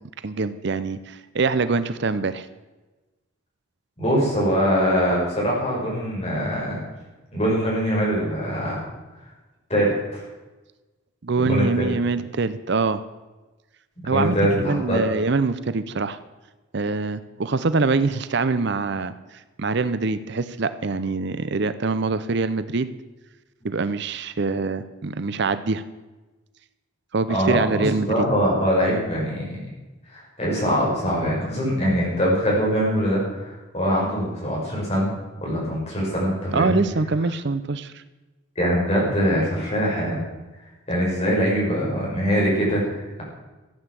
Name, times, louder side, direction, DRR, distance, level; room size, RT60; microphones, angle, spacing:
voice 1, 0.0-2.5 11.2-13.0 14.1-14.4 14.7-16.2 16.7-22.9 23.6-25.9 27.1-28.3 36.5-38.0, right 3 dB, 55° right, 13 dB, 0.6 m, -24 dB
voice 2, 4.0-6.8 7.3-8.8 9.7-10.2 11.4-11.9 14.0-15.0 27.3-29.6 30.1-35.1 35.4-36.8 38.6-40.2 40.9-43.2, equal, 30° left, -4 dB, 5.9 m, -23 dB
15.0 x 9.0 x 7.5 m, 1.1 s
head